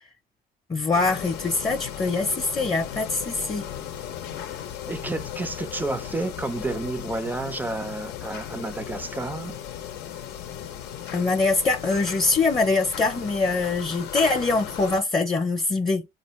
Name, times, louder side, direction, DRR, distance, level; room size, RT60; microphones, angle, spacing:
voice 1, 0.7-3.7 11.1-16.1, left 3 dB, 25° left, 0.6 m, -23 dB
sound 1, 0.9-15.0, left 10 dB, 85° left, 0.6 m, -36 dB
voice 2, 4.9-9.6, right 2 dB, 10° right, 0.4 m, -30 dB
4.2 x 2.4 x 3.0 m
cardioid pair, 110°, 17 cm